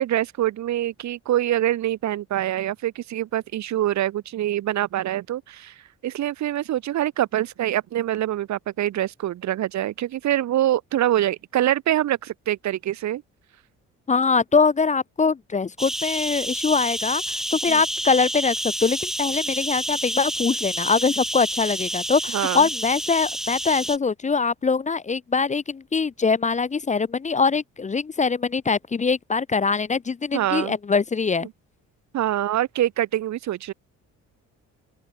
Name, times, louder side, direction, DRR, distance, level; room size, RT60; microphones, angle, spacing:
voice 1, 0.0-5.7 6.0-13.2 17.7-17.8 22.3-22.7 30.3-30.8 31.4-31.5 32.1-33.7, right 13 dB, 70° right, 1.1 m, -25 dB
voice 2, 14.1-31.5, left 4 dB, 25° left, 0.6 m, -23 dB
sound 1, 15.8-24.0, equal, ahead, 1.2 m, -29 dB
open air
cardioid pair, 90°, 30 cm